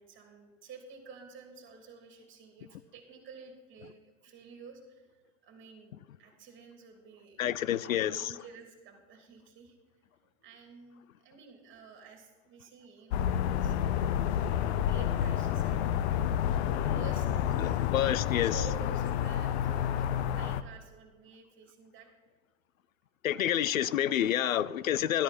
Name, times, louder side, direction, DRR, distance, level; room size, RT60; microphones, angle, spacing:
voice 1, 0.0-7.4 7.7-9.8 10.4-16.5 16.9-17.8 18.4-22.1, right 5 dB, 30° right, 3.1 m, -51 dB
voice 2, 7.4-8.2 17.6-18.5 23.2-25.2, left 11 dB, 85° left, 0.6 m, -28 dB
sound 1, 13.1-20.6, left 10 dB, 55° left, 0.8 m, -29 dB
13.0 x 9.4 x 4.3 m
hypercardioid pair, 110°, 40 cm